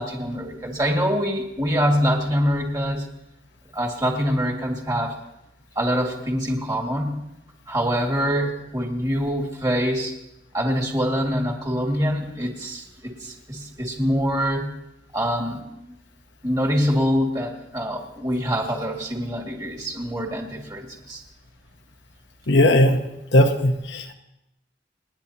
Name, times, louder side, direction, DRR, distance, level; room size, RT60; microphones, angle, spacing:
voice 1, 0.0-3.1 3.7-5.1 5.8-7.2 7.7-10.2 10.5-14.7 15.1-15.9 16.4-21.2, equal, 20° right, 0 dB, 2.1 m, -25 dB
voice 2, 22.5-23.0 23.3-24.1, left 1 dB, 75° left, 5 dB, 1.1 m, -17 dB
29.5 x 10.0 x 2.9 m, 0.90 s
head